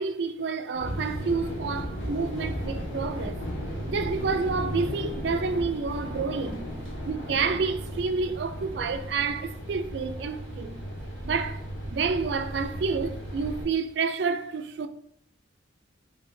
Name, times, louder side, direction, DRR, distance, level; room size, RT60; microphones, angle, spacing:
voice 1, 0.0-3.4 3.9-6.6 7.0-10.8 11.2-14.9, right 4 dB, 60° right, 0.4 m, -29 dB
sound 1, 0.7-13.6, equal, 90° left, 1.4 m, -35 dB
5.5 x 3.3 x 2.6 m
head